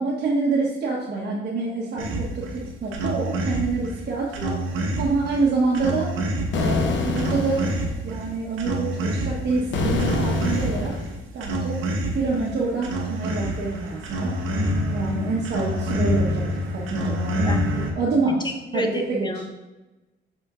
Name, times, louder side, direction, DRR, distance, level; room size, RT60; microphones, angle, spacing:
voice 1, 0.0-4.6 5.0-6.1 6.5-7.7 8.0-11.0 11.3-11.8 12.1-14.4 14.9-19.4, right 3 dB, 55° right, -5 dB, 1.3 m, -26 dB
sound 1, 2.0-17.9, right 1 dB, 85° right, 1.1 m, -27 dB
sound 2, 6.5-7.9 9.7-11.2, left 3 dB, 70° left, 0.9 m, -25 dB
voice 2, 18.4-19.5, left 2 dB, 20° left, 5 dB, 0.9 m, -31 dB
6.8 x 4.3 x 3.7 m, 1.1 s
cardioid pair, 90°, 20 cm